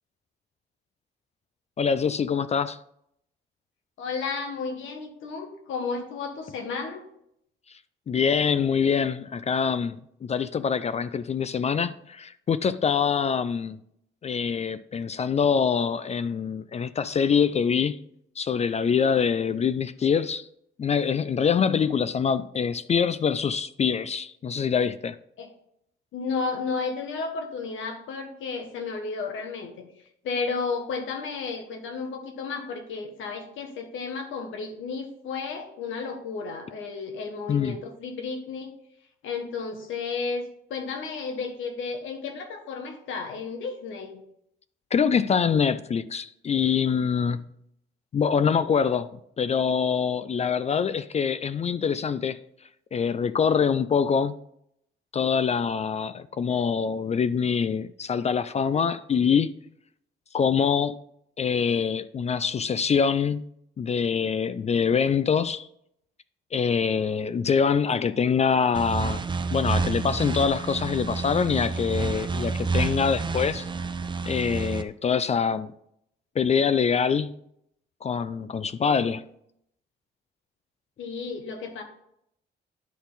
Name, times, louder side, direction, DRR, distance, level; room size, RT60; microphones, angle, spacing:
voice 1, 1.8-2.8 8.1-13.8 14.2-18.0 18.4-20.5 20.8-25.2 37.5-37.8 44.9-47.4 48.1-49.1 49.4-52.4 52.9-54.3 55.1-59.5 60.3-60.9 61.4-63.4 63.8-65.7 66.5-69.2 69.5-73.7 74.3-75.7 76.4-77.4 78.0-79.2, left 6 dB, 35° left, 0.3 m, -24 dB
voice 2, 4.0-7.0 25.4-25.5 26.1-29.7 30.2-38.7 39.2-40.4 40.7-44.2 81.0-81.8, left 4 dB, 80° left, 1.4 m, -33 dB
sound 1, 68.7-74.8, right 4 dB, 25° right, 0.6 m, -29 dB
10.5 x 4.1 x 4.0 m
cardioid pair, 90°, 20 cm